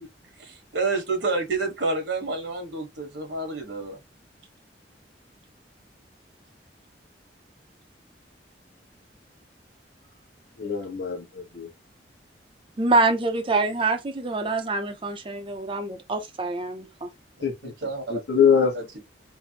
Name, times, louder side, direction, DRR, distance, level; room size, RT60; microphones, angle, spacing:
voice 1, 0.4-4.0 17.6-18.2 18.7-19.0, right 3 dB, 75° right, 1.2 m, -29 dB
voice 2, 10.6-11.7 17.4-17.7 18.1-18.7, left 7 dB, 65° left, 0.9 m, -23 dB
voice 3, 12.8-17.1, right 3 dB, 30° right, 0.5 m, -25 dB
3.3 x 2.0 x 2.8 m
head